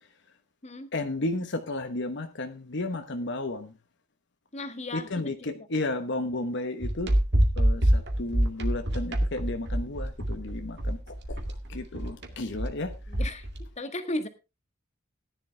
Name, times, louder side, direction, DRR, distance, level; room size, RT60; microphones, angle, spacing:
voice 1, 0.9-3.7 4.9-7.1 7.6-11.4 11.7-12.9, left 2 dB, 60° left, 1.2 m, -33 dB
voice 2, 4.5-5.3 13.1-13.5 13.8-14.3, left 1 dB, 35° left, 1.6 m, -35 dB
sound 1, 6.8-13.6, right 1 dB, 55° right, 2.2 m, -26 dB
14.5 x 10.5 x 3.4 m
head